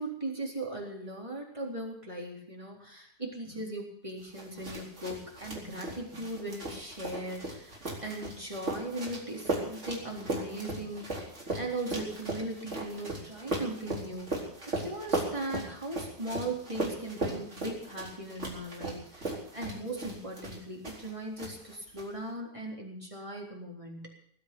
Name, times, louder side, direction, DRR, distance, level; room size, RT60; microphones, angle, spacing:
voice 1, 0.0-14.3 14.7-24.1, right 1 dB, 20° right, -1 dB, 3.9 m, -38 dB
sound 1, 4.3-21.1 21.4-22.0, right 2 dB, 45° right, 4.6 m, -37 dB
20.0 x 8.0 x 8.7 m, 0.63 s
omnidirectional pair, 1.7 m